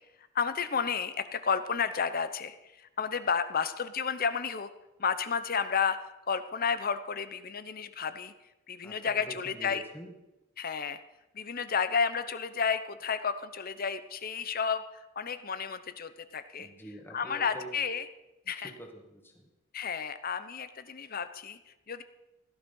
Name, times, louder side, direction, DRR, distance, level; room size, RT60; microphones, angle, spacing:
voice 1, 0.3-4.7 5.0-6.0 6.3-8.3 8.7-9.8 10.6-11.0 11.3-16.7 17.1-18.1 18.5-18.7 19.7-22.0, left 6 dB, 45° left, 12 dB, 0.8 m, -32 dB
voice 2, 8.8-10.1 16.6-17.8 18.6-19.5, right 1 dB, 10° left, 3 dB, 2.1 m, -46 dB
16.5 x 11.5 x 5.5 m, 0.98 s
head